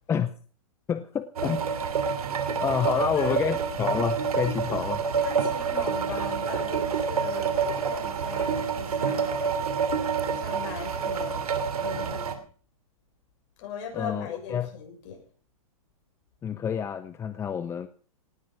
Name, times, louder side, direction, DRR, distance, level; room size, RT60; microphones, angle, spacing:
voice 1, 0.9-1.6 2.6-5.0 13.9-14.7 16.4-17.9, left 8 dB, 15° left, 12 dB, 0.7 m, -28 dB
sound 1, 1.4-12.3, right 6 dB, 90° right, 2.7 m, -28 dB
voice 2, 2.3-3.4 5.2-9.6 10.3-11.4 11.8-12.4 13.6-15.2, left 6 dB, 45° left, 3 dB, 6.8 m, -40 dB
18.5 x 9.4 x 6.0 m, 0.43 s
hypercardioid pair, 140°, 18 cm